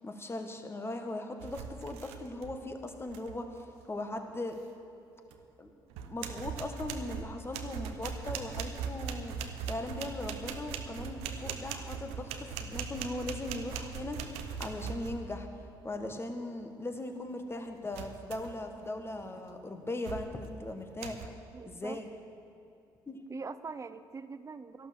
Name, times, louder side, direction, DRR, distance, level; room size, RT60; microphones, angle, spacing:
voice 1, 0.0-4.6 5.6-5.7 6.0-15.5 15.8-21.3 21.6-22.1 23.1-23.2, left 2 dB, 20° left, 5 dB, 1.7 m, -39 dB
sound 1, 1.4-2.6 2.9-3.4 5.3-5.4 5.9-15.5 17.9-18.6 19.1-19.4 20.0-20.5 21.0-21.3, right 6 dB, 70° right, 0.9 m, -40 dB
voice 2, 21.5-22.0 23.3-24.9, right 4 dB, 25° right, 14 dB, 0.7 m, -42 dB
13.0 x 12.0 x 6.6 m, 2.7 s
hypercardioid pair, 50°, 11 cm